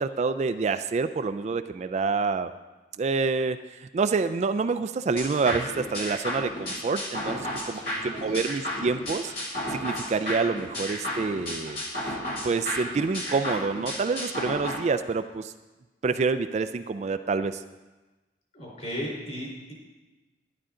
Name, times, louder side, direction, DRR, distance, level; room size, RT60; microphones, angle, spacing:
voice 1, 0.0-2.5 3.0-12.1 12.4-15.5 16.0-17.6, right 4 dB, 40° right, 10 dB, 0.3 m, -27 dB
sound 1, 5.2-14.8, left 1 dB, 60° left, 2.6 m, -33 dB
voice 2, 7.7-8.4 18.5-19.7, equal, 45° left, -3 dB, 4.1 m, -36 dB
12.0 x 11.0 x 3.8 m, 1.2 s
head